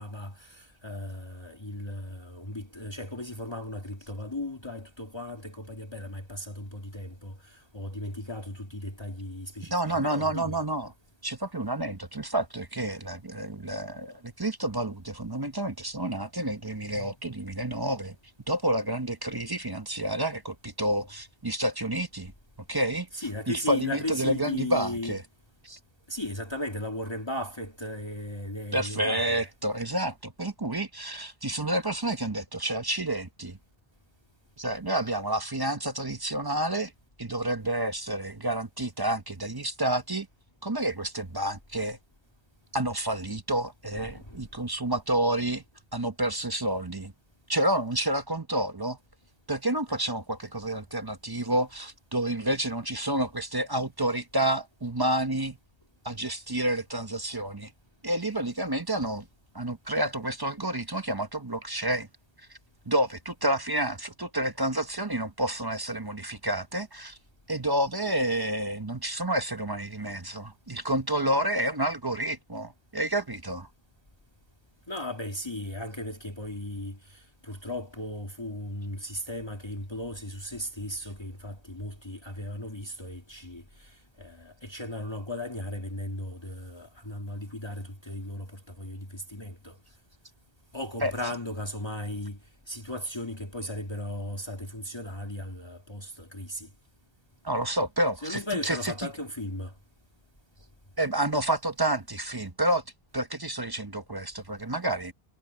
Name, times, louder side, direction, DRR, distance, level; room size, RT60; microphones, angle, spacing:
voice 1, 0.0-10.6 16.9-17.1 23.1-25.2 26.1-29.5 43.9-44.5 74.9-89.8 90.7-96.7 98.2-99.7, left 1 dB, 25° left, 2.2 m, -36 dB
voice 2, 9.7-10.9 11.2-18.1 18.5-22.3 22.7-23.1 23.5-25.2 25.6-25.8 28.7-33.6 34.6-36.9 37.2-40.3 40.6-42.0 42.7-45.6 45.9-47.1 47.5-49.0 49.5-55.6 56.0-57.7 58.0-59.2 59.5-62.1 62.9-67.2 67.5-73.7 91.0-91.1 97.4-98.9 101.0-102.8 103.1-105.1, right 1 dB, 25° right, 1.0 m, -29 dB
omnidirectional pair, 1.0 m